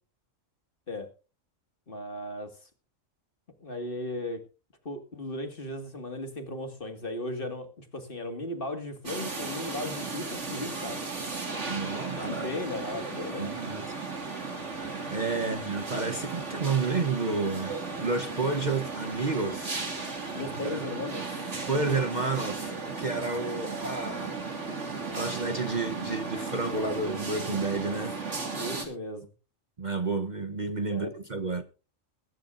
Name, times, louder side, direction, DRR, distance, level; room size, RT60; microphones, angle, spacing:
voice 1, 1.9-2.5 3.6-4.4 4.8-11.0 12.4-13.5 15.4-15.5 20.3-21.6 28.6-29.3 30.9-31.1, left 1 dB, 40° left, 2.2 m, -36 dB
sound 1, 9.1-28.9, right 4 dB, 60° right, 3.3 m, -35 dB
voice 2, 11.7-12.5 13.4-13.8 15.1-19.7 20.6-20.8 21.7-24.6 25.1-28.2 29.8-31.6, right 3 dB, 35° right, 1.1 m, -30 dB
21.5 x 11.0 x 2.6 m
omnidirectional pair, 1.4 m